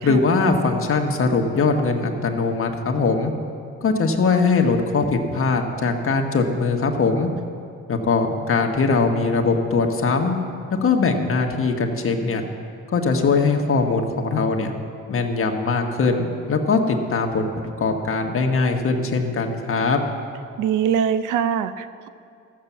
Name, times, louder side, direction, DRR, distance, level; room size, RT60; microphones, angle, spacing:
voice 1, 0.0-3.3 3.8-7.3 7.9-10.3 10.8-12.4 12.9-14.7 15.1-17.5 17.8-20.0, left 4 dB, 45° left, 3 dB, 1.4 m, -21 dB
voice 2, 20.6-22.1, right 8 dB, 85° right, 13 dB, 0.6 m, -23 dB
15.0 x 6.8 x 7.3 m, 2.4 s
cardioid pair, 90°, 30 cm